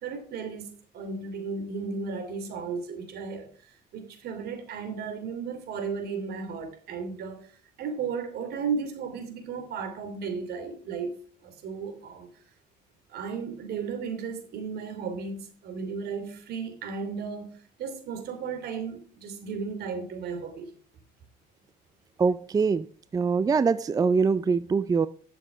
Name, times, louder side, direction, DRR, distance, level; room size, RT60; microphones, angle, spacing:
voice 1, 0.0-3.5 3.9-7.5 7.8-11.1 11.4-12.3 13.1-20.7, right 5 dB, 70° right, 2.9 m, -34 dB
voice 2, 22.2-22.9 23.1-25.1, right 5 dB, 20° right, 0.4 m, -23 dB
12.0 x 7.0 x 4.9 m
cardioid pair, 110°, 17 cm